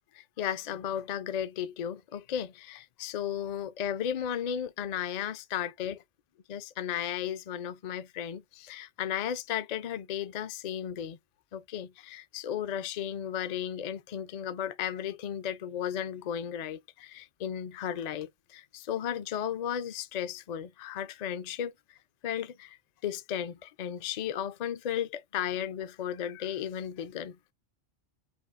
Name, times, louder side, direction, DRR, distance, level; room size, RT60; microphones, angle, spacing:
voice 1, 0.2-6.0 6.5-11.2 11.5-21.7 22.2-22.8 23.0-27.4, left 9 dB, 55° left, 0.5 m, -34 dB
4.4 x 2.8 x 2.4 m
omnidirectional pair, 1.2 m